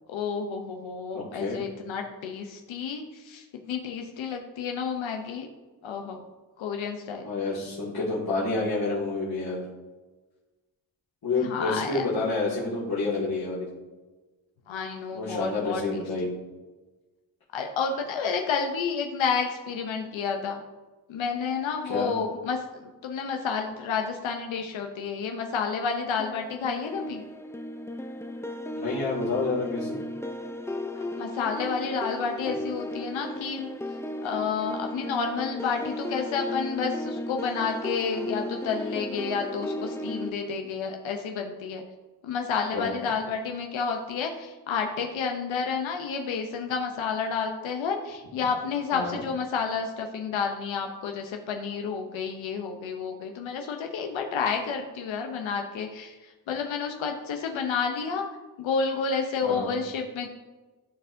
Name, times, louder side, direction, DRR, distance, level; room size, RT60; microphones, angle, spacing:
voice 1, 0.1-5.5 5.8-6.2 6.6-7.3 11.4-12.0 14.7-16.0 17.5-20.6 21.1-27.2 31.0-33.7 34.2-41.8 42.2-58.2 58.6-60.3, left 5 dB, 85° left, 4 dB, 0.7 m, -30 dB
voice 2, 1.1-1.6 7.2-9.6 11.2-13.7 15.1-16.4 21.8-22.1 28.7-30.0 42.7-42.9 48.9-49.2 59.4-59.7, left 3 dB, 55° left, -10 dB, 2.3 m, -29 dB
sound 1, 26.2-40.3, left 1 dB, 5° left, 0.4 m, -35 dB
12.5 x 4.3 x 2.6 m, 1.2 s
cardioid pair, 55°, 45 cm